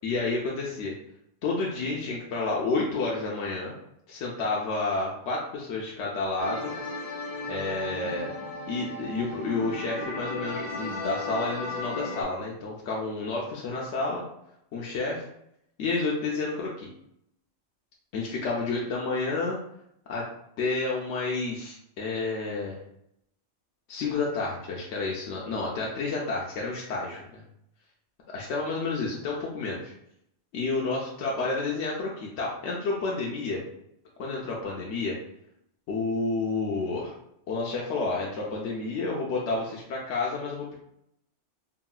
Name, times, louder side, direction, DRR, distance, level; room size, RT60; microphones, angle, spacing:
voice 1, 0.0-0.9 1.4-3.7 4.1-6.7 7.5-8.3 8.7-14.2 14.7-15.2 15.8-16.9 18.1-19.6 20.1-20.3 20.6-22.8 23.9-27.4 28.3-29.9 30.5-33.6 34.2-35.2 35.9-37.1 37.5-40.7, left 3 dB, 80° left, -3 dB, 0.9 m, -30 dB
sound 1, 6.4-12.2, left 2 dB, 50° left, 0.6 m, -35 dB
3.8 x 2.1 x 2.3 m, 0.76 s
omnidirectional pair, 1.2 m